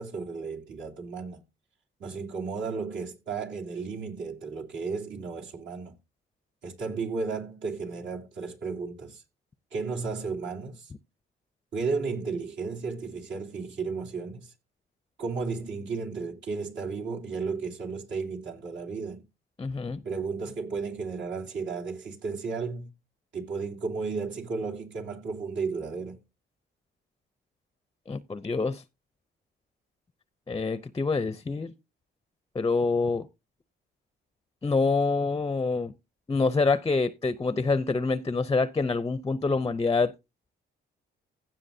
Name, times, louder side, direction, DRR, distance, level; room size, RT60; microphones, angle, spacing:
voice 1, 0.0-1.4 2.0-6.0 6.6-9.2 9.7-10.9 11.7-14.5 15.2-19.2 20.0-22.9 23.3-26.2, right 4 dB, 70° right, 3.0 m, -33 dB
voice 2, 19.6-20.0 28.1-28.8 30.5-31.7 32.5-33.3 34.6-35.9 36.3-40.1, left 4 dB, 20° left, 0.5 m, -26 dB
16.0 x 7.2 x 2.7 m
cardioid pair, 90°, 20 cm